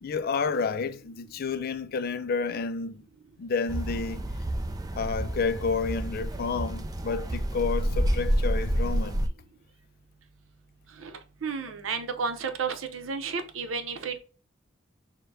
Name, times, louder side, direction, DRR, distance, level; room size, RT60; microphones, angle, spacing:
voice 1, 0.0-3.0 3.4-4.2 5.0-9.2, left 5 dB, 50° left, 0.4 m, -30 dB
sound 1, 3.7-9.3, right 1 dB, 20° right, 0.3 m, -29 dB
voice 2, 11.0-14.2, right 5 dB, 90° right, 0.7 m, -32 dB
6.4 x 2.2 x 2.6 m
head